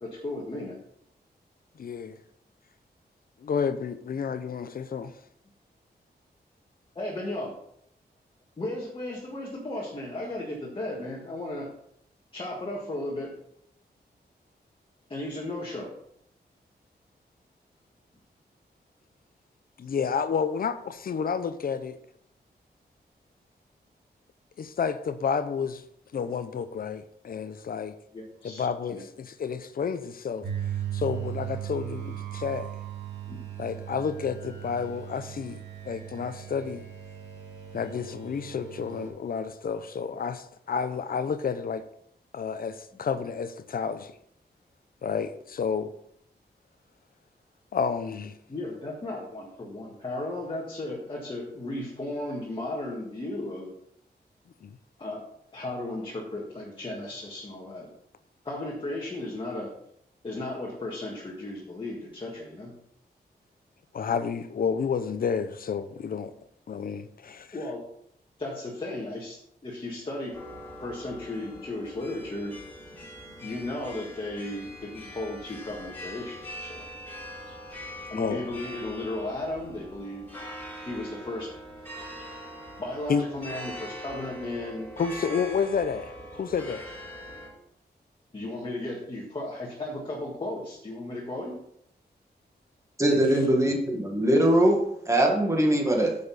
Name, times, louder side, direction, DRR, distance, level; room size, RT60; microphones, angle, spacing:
voice 1, 0.0-0.8 7.0-7.5 8.6-11.7 12.3-13.3 15.1-15.9 28.1-29.0 33.3-33.4 48.5-53.7 55.0-55.2 55.5-57.9 58.4-59.8 60.2-62.7 67.5-67.8 68.4-70.4 70.8-72.6 73.4-76.8 78.1-80.3 80.8-81.5 82.8-84.9 88.3-91.6, left 1 dB, 30° left, 1.8 m, -35 dB
voice 2, 1.8-2.2 3.4-5.1 19.8-22.0 24.6-25.8 26.1-28.0 28.4-30.4 30.9-32.7 33.6-36.8 37.7-41.8 42.3-44.1 45.0-45.9 47.7-48.4 54.6-54.7 63.9-66.3 66.7-67.5 78.1-78.4 83.1-83.2 85.0-86.8 93.0-93.2, left 6 dB, 60° left, 0.7 m, -30 dB
sound 1, 30.4-39.1, right 11 dB, 75° right, 3.1 m, -37 dB
sound 2, 70.3-87.5, equal, 10° left, 4.5 m, -42 dB
voice 3, 93.0-94.8 95.1-96.2, right 1 dB, 15° right, 1.7 m, -22 dB
10.0 x 6.8 x 4.1 m
wide cardioid pair, 165°, 17 cm